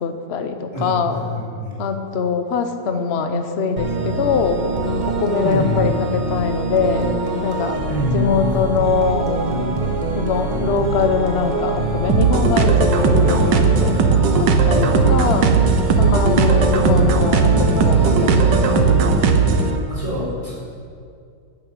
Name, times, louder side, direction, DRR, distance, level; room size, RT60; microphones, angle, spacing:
voice 1, 0.0-1.2 1.8-4.6 5.1-7.1 7.4-14.0 14.4-15.5 16.0-18.8, left 5 dB, 45° left, 7 dB, 1.0 m, -23 dB
voice 2, 0.7-1.7 5.4-5.8 7.9-8.7 14.2-15.2 19.9-20.5, left 1 dB, 20° left, -7 dB, 3.8 m, -25 dB
sound 1, 3.8-19.8, right 1 dB, 30° right, 1.3 m, -24 dB
sound 2, 12.1-19.7, right 5 dB, 85° right, 1.7 m, -16 dB
12.5 x 8.9 x 8.5 m, 2.3 s
omnidirectional pair, 1.9 m